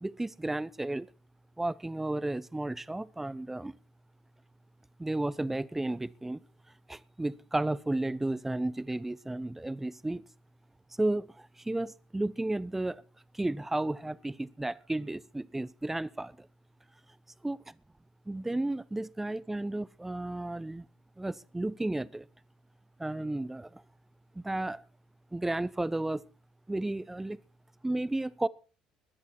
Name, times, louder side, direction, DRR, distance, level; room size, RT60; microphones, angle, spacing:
voice 1, 0.0-1.1 1.6-3.8 5.0-6.4 6.9-10.2 11.0-13.0 13.3-16.4 17.4-17.6 18.3-20.8 21.2-22.2 23.0-23.8 24.3-24.8 25.3-26.2 26.7-27.4 27.8-28.5, right 2 dB, 10° right, 1.0 m, -33 dB
20.5 x 11.0 x 4.5 m
hypercardioid pair, 60°, 2 cm